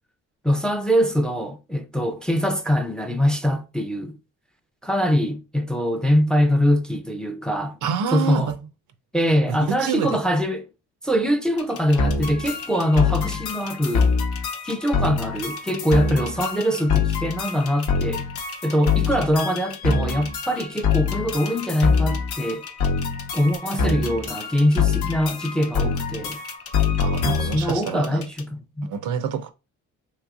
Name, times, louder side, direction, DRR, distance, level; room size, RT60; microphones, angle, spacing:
voice 1, 0.4-4.2 4.8-7.8 8.1-8.5 9.1-10.6 11.0-14.1 14.6-18.3 18.6-22.6 23.3-26.4 27.2-28.9, equal, 5° left, 0.4 m, -23 dB
voice 2, 7.8-8.5 9.5-10.2 27.0-28.3 28.8-29.5, right 7 dB, 75° right, 0.6 m, -27 dB
sound 1, 11.6-28.4, left 6 dB, 50° left, 0.7 m, -41 dB
sound 2, 12.0-27.7, left 5 dB, 80° left, 0.8 m, -25 dB
3.3 x 3.0 x 2.4 m
cardioid pair, 90°, 30 cm